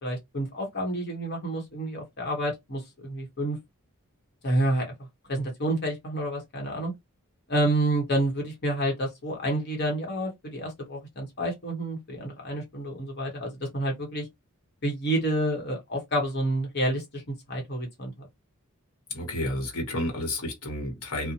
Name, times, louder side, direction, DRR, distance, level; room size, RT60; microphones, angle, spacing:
voice 1, 0.0-3.6 4.4-4.9 5.3-6.9 7.5-14.3 14.8-17.2 17.5-18.1, right 1 dB, 50° left, 1.0 m, -29 dB
voice 2, 19.1-21.3, left 1 dB, 75° left, 1.0 m, -31 dB
2.6 x 2.1 x 2.8 m
head